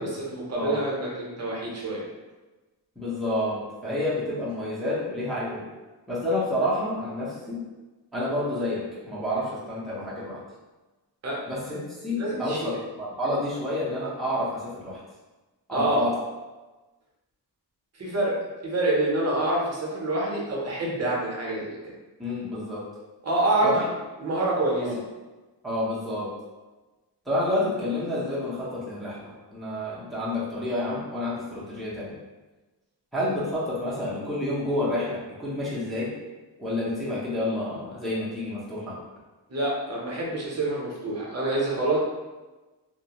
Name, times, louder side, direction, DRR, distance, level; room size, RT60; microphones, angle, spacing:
voice 1, 0.0-2.0 11.2-11.4 12.2-12.8 15.7-16.0 18.0-21.8 23.2-23.8 24.2-24.9 39.5-42.0, right 2 dB, 40° right, -4 dB, 0.7 m, -27 dB
voice 2, 3.0-5.6 6.1-7.6 8.1-10.4 11.5-12.7 13.0-15.0 15.7-16.1 22.2-22.8 23.6-23.8 24.8-25.0 25.6-26.3 27.3-32.1 33.1-36.1 36.6-39.0, left 1 dB, ahead, -8 dB, 0.6 m, -29 dB
2.4 x 2.1 x 2.8 m, 1.2 s
wide cardioid pair, 135°, 42 cm